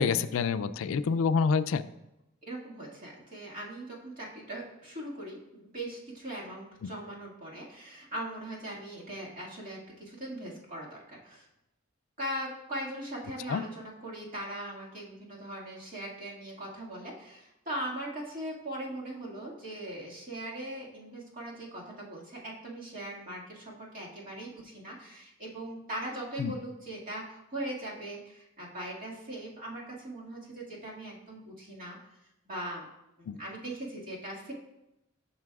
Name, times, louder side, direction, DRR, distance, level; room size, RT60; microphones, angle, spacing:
voice 1, 0.0-1.8 13.5-13.6 26.4-26.5 33.3-33.4, left 5 dB, 75° left, 13 dB, 0.3 m, -27 dB
voice 2, 2.5-11.5 12.2-32.0 32.5-32.9 33.2-34.5, right 1 dB, 45° right, -5 dB, 2.0 m, -40 dB
12.0 x 5.9 x 2.4 m, 0.90 s
head